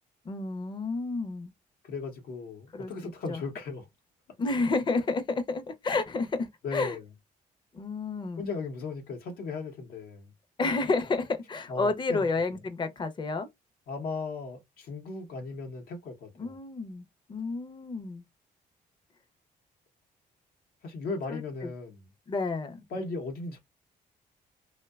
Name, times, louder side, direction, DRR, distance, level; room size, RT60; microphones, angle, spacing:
voice 1, 0.3-1.5 2.7-3.4 4.4-7.0 7.7-8.5 10.6-13.5 16.4-17.0 17.3-18.2 21.3-21.7 22.3-22.8, left 3 dB, 30° left, 0.5 m, -30 dB
voice 2, 1.8-3.9 6.6-7.0 8.4-10.3 11.7-12.3 13.9-16.5 20.8-22.0 22.9-23.6, left 4 dB, 85° left, 0.8 m, -37 dB
2.6 x 2.1 x 2.2 m
cardioid pair, 110°, 15 cm